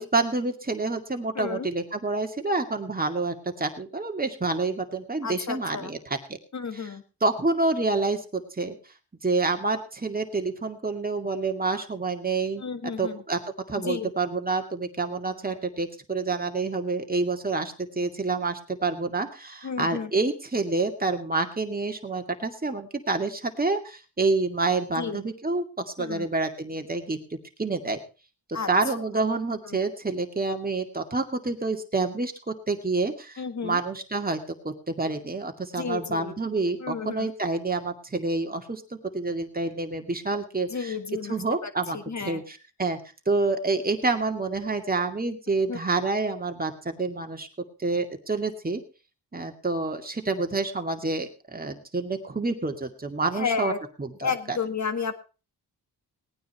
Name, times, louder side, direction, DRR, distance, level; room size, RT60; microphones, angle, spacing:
voice 1, 0.0-6.2 6.7-6.9 7.2-8.8 9.2-12.6 13.0-13.4 13.7-27.2 27.6-28.0 28.5-34.4 34.6-41.0 41.3-43.0 43.3-47.5 47.8-48.8 49.3-53.7 54.0-54.6, right 3 dB, 20° right, 5 dB, 2.2 m, -28 dB
voice 2, 1.4-1.7 5.2-5.9 6.5-7.0 12.6-13.2 13.8-14.1 19.6-20.1 25.0-25.2 26.0-26.3 28.5-28.7 29.7-29.8 33.4-33.8 35.8-36.3 36.8-37.3 40.7-42.4 45.7-45.8 53.3-53.8 54.2-55.2, left 5 dB, 40° left, 10 dB, 1.8 m, -32 dB
18.5 x 9.5 x 4.5 m, 0.33 s
cardioid pair, 65°, 41 cm